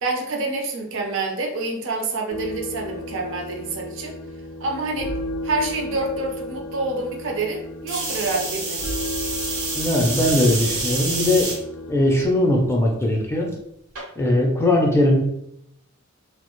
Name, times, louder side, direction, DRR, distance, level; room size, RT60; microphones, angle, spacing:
voice 1, 0.0-4.2 4.6-5.1 5.4-8.9, right 2 dB, 60° right, 1 dB, 0.5 m, -27 dB
sound 1, 2.3-12.3, left 1 dB, 75° left, 0.4 m, -34 dB
sound 2, 7.9-11.6 12.2-12.7 14.0-14.1, right 3 dB, 80° right, 0.9 m, -28 dB
voice 2, 9.7-11.6 11.9-13.5 14.2-15.2, left 1 dB, 10° left, -1 dB, 0.4 m, -19 dB
2.4 x 2.0 x 2.9 m, 0.75 s
head